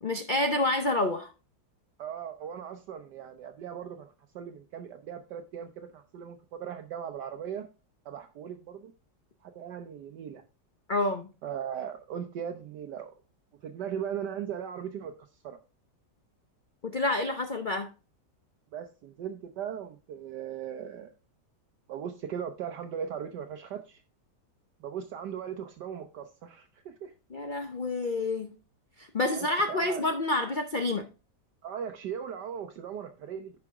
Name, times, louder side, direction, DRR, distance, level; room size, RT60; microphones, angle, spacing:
voice 1, 0.0-1.3 10.9-11.3 16.9-17.9 27.3-28.6 29.0-31.1, left 2 dB, 60° left, 0.5 m, -28 dB
voice 2, 2.0-7.7 8.0-8.9 9.4-10.4 11.4-13.1 13.6-15.1 15.4-15.6 18.7-21.1 21.9-24.0 24.8-27.1 29.3-30.0 31.6-33.5, right 8 dB, 70° right, 1.3 m, -38 dB
11.0 x 5.0 x 3.5 m
omnidirectional pair, 2.0 m